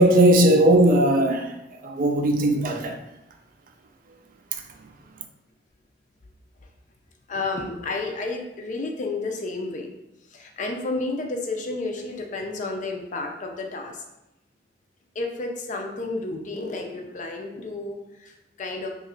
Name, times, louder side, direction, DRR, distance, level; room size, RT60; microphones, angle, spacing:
voice 1, 0.0-3.0 4.5-4.6, right 1 dB, 50° right, 4 dB, 0.4 m, -18 dB
voice 2, 7.3-9.9 10.3-14.0 15.1-18.9, left 3 dB, 40° left, 3 dB, 0.5 m, -31 dB
3.0 x 2.4 x 4.3 m, 0.92 s
head